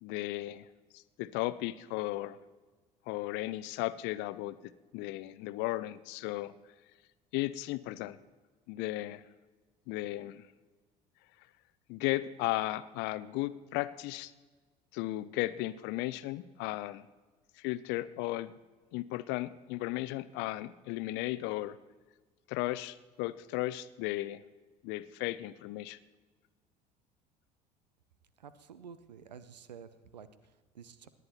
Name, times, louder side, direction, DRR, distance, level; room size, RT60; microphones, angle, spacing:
voice 1, 0.0-0.7 0.9-2.4 3.1-4.6 4.9-6.5 7.3-8.2 8.7-9.2 9.9-10.4 11.9-14.3 14.9-17.0 17.6-18.6 18.9-21.8 22.5-24.4 24.8-26.0, left 17 dB, 55° left, 16 dB, 0.6 m, -35 dB
voice 2, 28.4-31.1, right 7 dB, 80° right, 13 dB, 0.8 m, -51 dB
18.5 x 10.5 x 4.2 m, 1.3 s
figure-of-eight pair, 60°, 21 cm